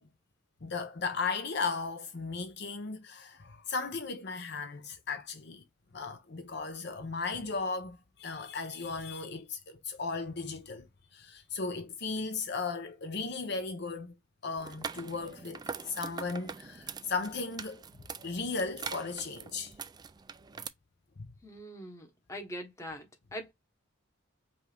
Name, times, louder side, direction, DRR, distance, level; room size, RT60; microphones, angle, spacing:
voice 1, 0.6-5.6 5.9-10.9 11.1-14.1 14.4-17.8 18.2-19.7 21.2-21.3, left 4 dB, 55° left, 0.8 m, -36 dB
sound 1, 14.6-20.7, right 5 dB, 20° right, 0.3 m, -43 dB
voice 2, 21.4-23.5, equal, 15° left, 1.1 m, -43 dB
5.3 x 2.6 x 3.4 m
head